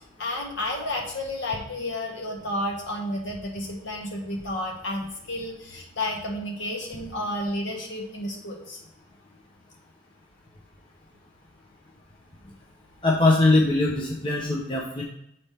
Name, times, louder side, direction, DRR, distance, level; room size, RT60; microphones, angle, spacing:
voice 1, 0.2-8.8, left 1 dB, 60° left, -1 dB, 1.6 m, -31 dB
voice 2, 13.0-15.0, left 2 dB, 25° left, -3 dB, 0.7 m, -21 dB
9.4 x 4.2 x 3.3 m, 0.76 s
head